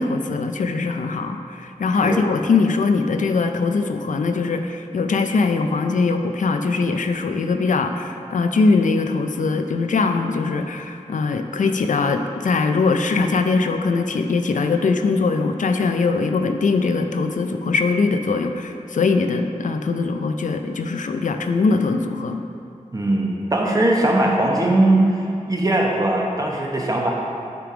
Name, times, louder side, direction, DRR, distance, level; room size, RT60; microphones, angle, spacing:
voice 1, 0.0-22.4, left 4 dB, 75° left, 6 dB, 0.4 m, -21 dB
voice 2, 22.9-27.1, right 1 dB, 25° right, -2 dB, 1.0 m, -20 dB
9.1 x 3.4 x 4.8 m, 2.5 s
wide cardioid pair, 90°, 13 cm